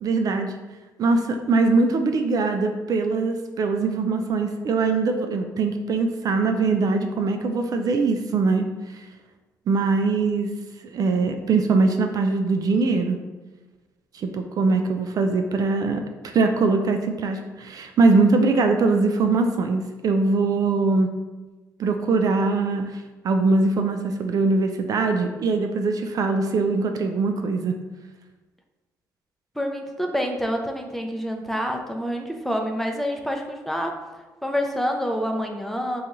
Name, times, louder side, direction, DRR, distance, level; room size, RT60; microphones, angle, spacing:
voice 1, 0.0-0.6 1.0-8.7 9.7-10.5 10.8-13.2 14.1-21.1 21.8-22.9 23.2-27.8, right 3 dB, 55° right, 5 dB, 0.3 m, -22 dB
voice 2, 29.6-34.0 34.4-36.0, equal, 5° left, 3 dB, 0.5 m, -27 dB
2.8 x 2.3 x 3.8 m, 1.2 s
supercardioid pair, 60°, 8 cm